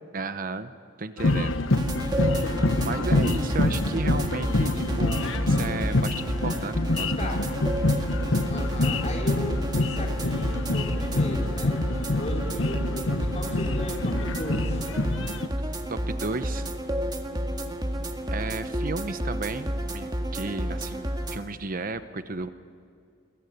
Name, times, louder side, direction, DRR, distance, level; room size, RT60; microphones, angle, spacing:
voice 1, 0.1-0.7 1.0-1.6 2.8-7.3 7.7-8.0 13.5-13.7 15.9-16.7 18.3-22.5, right 3 dB, 45° right, 11 dB, 0.9 m, -33 dB
sound 1, 1.2-15.5, left 2 dB, 80° left, 1.2 m, -26 dB
sound 2, 1.7-21.4, right 1 dB, 20° right, 1.9 m, -31 dB
voice 2, 2.9-3.5 7.2-7.6 8.5-11.8 12.1-14.9, left 1 dB, 35° left, 0 dB, 4.9 m, -37 dB
28.0 x 22.5 x 9.4 m, 2.4 s
head